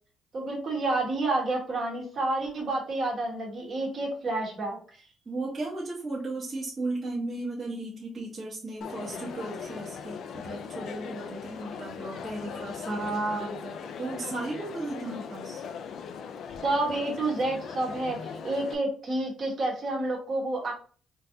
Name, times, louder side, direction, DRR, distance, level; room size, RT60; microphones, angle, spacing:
voice 1, 0.3-4.8 12.9-13.5 16.6-20.7, right 2 dB, 55° right, -1 dB, 1.4 m, -29 dB
voice 2, 4.9-15.6, right 2 dB, 40° right, -5 dB, 1.1 m, -36 dB
Crowd, 8.8-18.7, left 6 dB, 70° left, 0.4 m, -39 dB
3.8 x 2.5 x 2.7 m, 0.40 s
cardioid pair, 90°, 0 cm